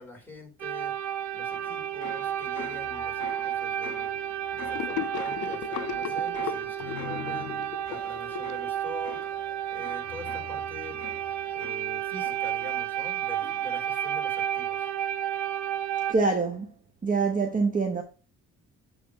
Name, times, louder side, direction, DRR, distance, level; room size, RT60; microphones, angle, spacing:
voice 1, 0.0-4.2 4.5-9.3 9.7-11.0 11.5-14.9, left 2 dB, 5° left, 3.3 m, -45 dB
sound 1, 0.6-16.1, right 11 dB, 75° right, 0.8 m, -32 dB
sound 2, 1.5-13.1 13.4-13.9, left 8 dB, 60° left, 1.3 m, -45 dB
Gurgling / Sink (filling or washing), 4.7-9.2, left 17 dB, 85° left, 0.5 m, -37 dB
voice 2, 16.1-16.7 17.0-18.0, right 4 dB, 25° right, 0.9 m, -25 dB
8.5 x 3.5 x 4.7 m
cardioid pair, 90°, 30 cm